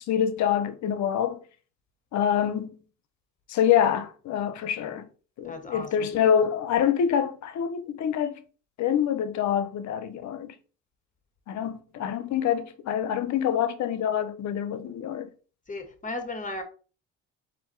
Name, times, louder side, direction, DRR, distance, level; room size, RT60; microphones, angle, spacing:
voice 1, 0.0-1.4 2.1-2.8 3.5-5.0 5.4-8.4 8.8-10.5 11.5-15.3, left 9 dB, 60° left, 0.8 m, -26 dB
voice 2, 5.4-6.1 15.7-16.6, left 2 dB, 25° left, 1.4 m, -35 dB
4.4 x 2.7 x 4.4 m
supercardioid pair, 65°, 32 cm